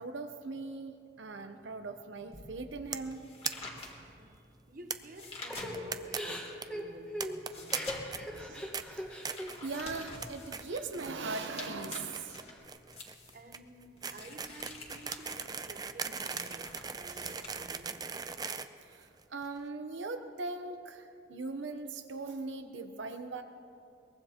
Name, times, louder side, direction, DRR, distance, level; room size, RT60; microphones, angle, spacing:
voice 1, 0.0-3.2 8.3-12.4 17.2-17.4 18.9-23.4, right 3 dB, 80° right, 0.8 m, -40 dB
sound 1, 2.3-6.2 6.6-17.5, left 2 dB, 30° left, 1.9 m, -48 dB
sound 2, 2.9-3.1 3.4-3.5 3.8-3.9 4.1-4.2 4.9-5.0 5.5-6.2 6.4-6.6 7.2-7.8 8.1-8.4 8.7-8.8 9.2-9.6 9.9-10.3 10.5-11.1 11.4-19.5, right 6 dB, 20° right, 0.4 m, -38 dB
voice 2, 3.9-8.6 13.3-18.3, right 1 dB, 45° right, 0.9 m, -52 dB
Crying sobbing / Breathing, 5.5-10.1 10.5-11.4 11.8-12.6, equal, 5° left, 1.3 m, -42 dB
22.5 x 21.0 x 2.9 m
head